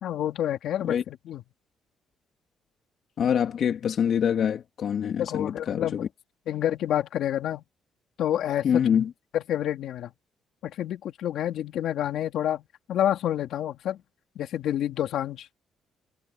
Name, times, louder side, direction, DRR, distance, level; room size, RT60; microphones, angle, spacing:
voice 1, 0.0-1.4 5.2-6.1 6.5-7.6 8.2-8.8 9.3-10.1 10.6-12.6 12.9-14.0 14.3-15.5, left 11 dB, 75° left, 3.1 m, -28 dB
voice 2, 3.2-6.1 8.6-9.1, left 8 dB, 60° left, 3.2 m, -25 dB
cardioid pair, 90°, 0 cm